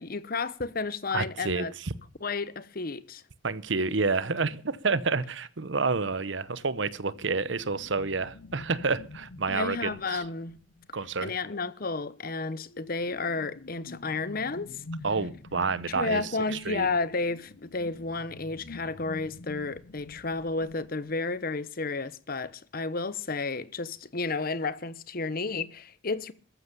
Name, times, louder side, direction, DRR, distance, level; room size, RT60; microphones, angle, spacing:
voice 1, 0.0-1.7 2.2-3.2 9.5-10.6 11.2-14.8 15.9-26.3, left 3 dB, 50° left, 1.0 m, -32 dB
voice 2, 1.1-1.9 3.4-10.2 10.9-11.3 15.0-16.2 16.5-16.9, right 4 dB, 70° right, 1.0 m, -29 dB
sound 1, 6.4-11.3 12.2-21.5, left 2 dB, 75° left, 0.8 m, -48 dB
14.5 x 11.0 x 6.9 m
head